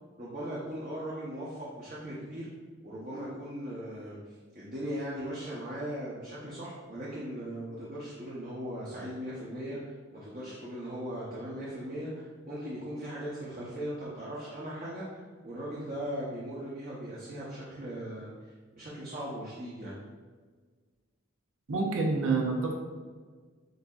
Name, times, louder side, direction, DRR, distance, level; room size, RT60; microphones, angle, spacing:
voice 1, 0.2-2.5 2.8-4.2 4.5-19.9, equal, 40° right, -7 dB, 0.8 m, -39 dB
voice 2, 21.7-22.7, right 3 dB, 85° right, 1 dB, 0.7 m, -27 dB
7.9 x 2.7 x 2.4 m, 1.5 s
head